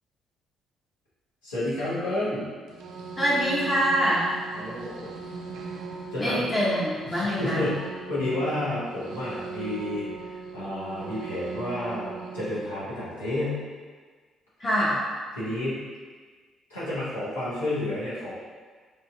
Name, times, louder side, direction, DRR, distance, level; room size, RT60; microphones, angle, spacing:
voice 1, 1.4-2.5 4.5-5.1 6.1-6.5 7.0-13.6 15.4-15.8 16.7-18.3, left 1 dB, 85° left, -11 dB, 0.9 m, -30 dB
sound 1, 2.7-12.6, right 5 dB, 65° right, 0.3 m, -39 dB
voice 2, 3.2-4.3 6.2-7.6 14.6-15.0, equal, 30° left, -8 dB, 0.8 m, -24 dB
3.3 x 2.7 x 2.3 m, 1.5 s
figure-of-eight pair, 45°, 0 cm